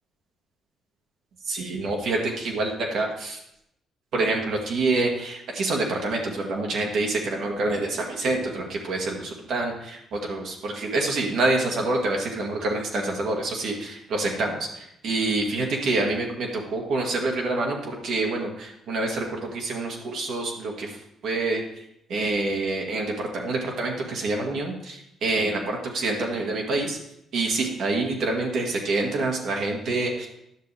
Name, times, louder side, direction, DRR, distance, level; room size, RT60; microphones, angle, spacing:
voice 1, 1.5-3.4 4.1-14.7 15.0-20.9 21.2-21.6 22.1-27.0 27.3-30.3, right 2 dB, 70° right, 0 dB, 1.8 m, -27 dB
10.0 x 6.7 x 3.4 m, 0.78 s
cardioid pair, 90°, 0 cm